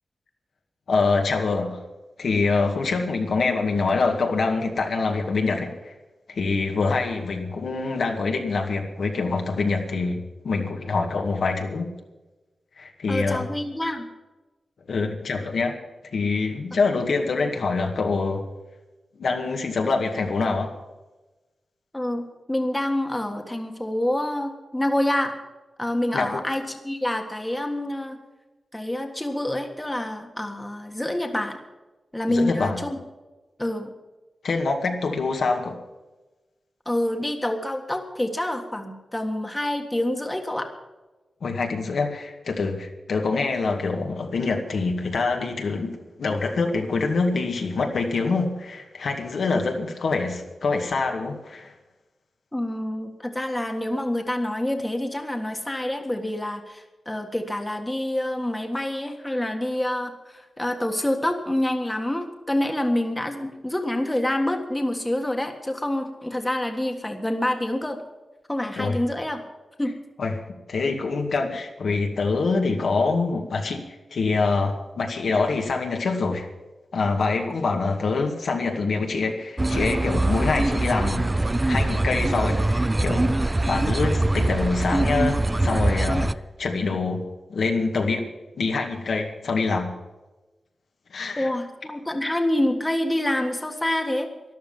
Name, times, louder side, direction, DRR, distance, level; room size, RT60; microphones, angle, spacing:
voice 1, 0.9-1.8 2.2-5.9 6.3-11.9 12.8-13.5 14.9-15.8 16.1-18.4 19.2-20.7 26.1-26.3 32.3-32.8 34.4-35.8 41.4-51.7 68.8-69.0 70.2-73.8 74.1-76.5 76.9-81.3 81.7-86.3 86.6-87.2 87.5-88.3 88.6-89.9 91.1-91.5, left 4 dB, 75° left, 2 dB, 2.1 m, -25 dB
voice 2, 13.1-14.1 21.9-25.3 25.8-28.2 28.7-31.6 32.1-32.9 33.6-33.9 36.8-40.7 52.5-68.0 68.5-69.4 69.8-69.9 91.4-94.3, left 1 dB, 10° left, 4 dB, 1.6 m, -27 dB
sound 1, 79.6-86.3, right 2 dB, 20° right, 0.4 m, -23 dB
13.5 x 11.5 x 7.2 m, 1.1 s
wide cardioid pair, 110°, 0 cm